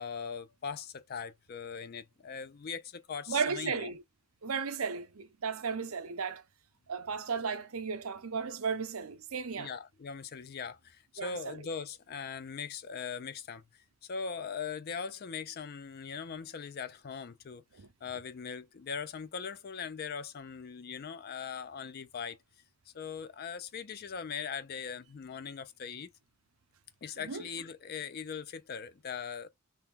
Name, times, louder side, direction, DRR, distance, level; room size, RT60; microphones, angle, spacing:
voice 1, 0.0-3.9 9.6-13.6 14.0-17.6 18.0-22.4 22.9-26.1 27.0-29.5, left 6 dB, 45° left, 0.4 m, -40 dB
voice 2, 3.3-4.0 4.4-6.4 6.9-9.7 11.2-11.4 17.8-17.9 27.2-27.4, right 5 dB, 70° right, 0.7 m, -34 dB
2.8 x 2.2 x 3.6 m
head